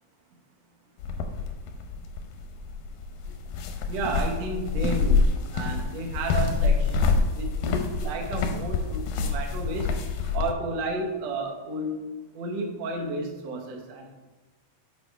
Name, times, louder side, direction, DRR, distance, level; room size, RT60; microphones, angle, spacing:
sound 1, 1.0-10.5, left 4 dB, 80° left, 2.3 m, -27 dB
voice 1, 3.9-9.9 10.3-12.0 12.3-14.1, right 2 dB, 70° right, 1 dB, 1.6 m, -32 dB
6.6 x 5.2 x 4.6 m, 1.2 s
omnidirectional pair, 4.4 m